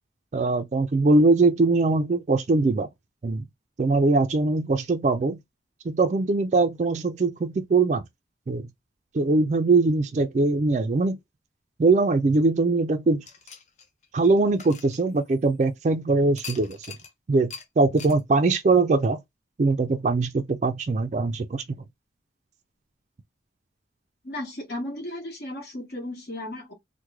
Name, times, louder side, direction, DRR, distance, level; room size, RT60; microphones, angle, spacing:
voice 1, 0.3-2.9 3.2-3.4 3.8-5.4 5.9-8.0 8.5-8.6 9.1-11.2 11.8-13.2 14.1-16.8 17.3-19.2 19.6-21.8, right 3 dB, 40° right, 0.3 m, -22 dB
sound 1, 13.2-15.6 16.4-17.1 17.5-17.7 18.0-18.2, left 5 dB, 40° left, 0.6 m, -43 dB
voice 2, 24.2-26.7, left 1 dB, 60° left, 1.2 m, -35 dB
3.0 x 2.1 x 3.5 m
head